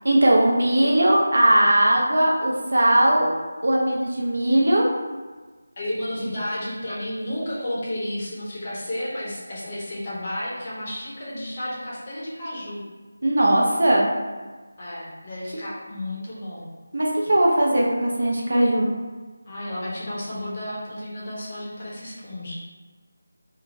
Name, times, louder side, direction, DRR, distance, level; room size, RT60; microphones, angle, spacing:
voice 1, 0.0-3.3 3.6-4.8 13.2-14.1 16.9-18.9, right 1 dB, 80° right, -2 dB, 0.8 m, -19 dB
voice 2, 5.8-12.8 14.8-16.7 19.5-22.5, left 1 dB, 25° left, -6 dB, 0.6 m, -32 dB
2.8 x 2.3 x 2.7 m, 1.3 s
figure-of-eight pair, 180°, 0 cm